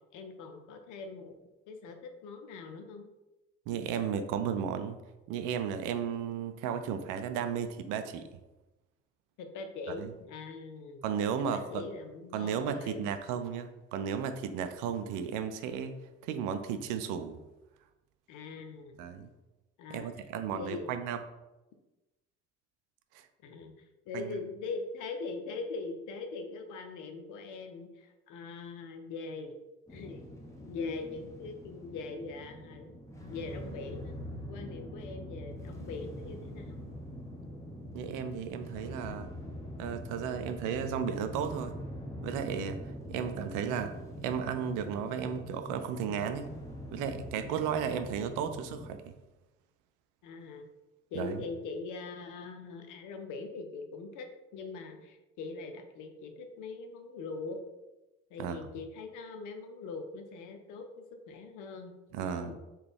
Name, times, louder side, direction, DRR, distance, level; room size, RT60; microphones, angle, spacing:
voice 1, 0.1-1.4 1.7-3.1 4.0-4.2 9.4-13.1 18.3-19.0 19.8-20.3 20.5-20.9 23.4-29.6 29.9-30.3 30.6-32.9 33.2-34.1 34.5-36.8 47.7-47.9 50.2-50.7 51.1-54.3 54.5-57.6 58.3-62.5, left 4 dB, 60° left, 5 dB, 0.6 m, -42 dB
voice 2, 3.7-5.0 5.3-8.3 10.0-10.1 11.0-11.8 12.3-16.0 16.2-17.4 19.0-19.3 19.9-21.2 23.1-23.3 24.1-24.4 37.9-39.3 39.8-41.8 42.2-42.8 43.1-43.9 44.2-46.5 46.9-49.0 51.2-51.4 58.4-58.6 62.1-62.5, right 7 dB, 65° right, 8 dB, 0.5 m, -34 dB
sound 1, 29.9-48.9, equal, 10° left, 1.0 m, -44 dB
3.8 x 2.3 x 3.4 m, 1.0 s
hypercardioid pair, 55°, 35 cm